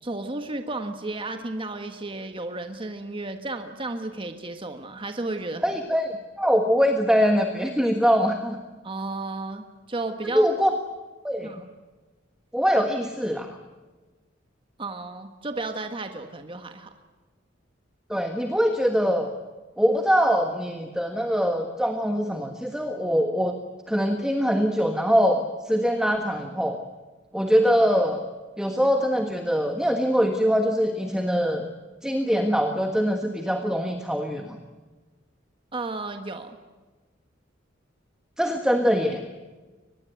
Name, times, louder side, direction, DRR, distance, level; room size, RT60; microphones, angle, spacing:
voice 1, 0.0-5.7 8.8-10.5 11.4-11.7 14.8-16.9 35.7-36.6, right 2 dB, 30° right, 6 dB, 1.4 m, -33 dB
voice 2, 5.6-8.6 10.2-10.8 11.2-11.5 12.5-13.5 18.1-19.3 19.8-23.5 23.9-26.8 27.3-28.2 28.6-31.6 32.0-34.6 38.4-39.2, equal, 5° right, 4 dB, 1.4 m, -23 dB
23.5 x 20.5 x 9.4 m, 1.3 s
head